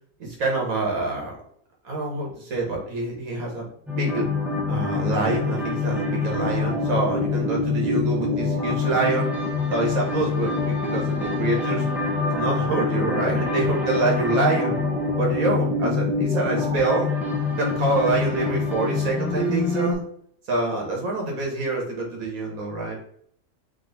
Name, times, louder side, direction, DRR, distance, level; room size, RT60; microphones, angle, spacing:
voice 1, 0.2-1.3 1.8-3.7 3.9-4.3 4.7-9.3 9.7-11.9 12.3-14.8 15.2-17.1 17.6-20.0 20.5-23.0, right 3 dB, 85° right, -1 dB, 1.7 m, -26 dB
sound 1, 3.9-19.9, left 3 dB, ahead, 0.4 m, -25 dB
3.8 x 3.2 x 3.9 m, 0.66 s
omnidirectional pair, 1.4 m